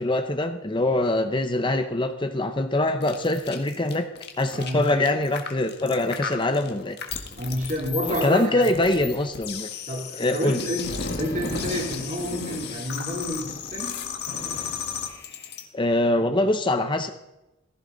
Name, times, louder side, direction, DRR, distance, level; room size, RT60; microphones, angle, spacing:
voice 1, 0.0-4.1 4.4-7.0 8.2-9.7 10.2-10.6 15.7-17.1, left 2 dB, 25° left, 7 dB, 0.7 m, -23 dB
sound 1, 3.0-15.6, left 6 dB, 55° left, 1.7 m, -34 dB
voice 2, 4.5-4.9 7.4-8.7 9.9-14.0, equal, 40° right, 0 dB, 3.1 m, -29 dB
Fireworks, 11.5-12.8 14.3-15.8, left 1 dB, 75° left, 3.9 m, -42 dB
15.5 x 14.5 x 3.9 m, 0.96 s
head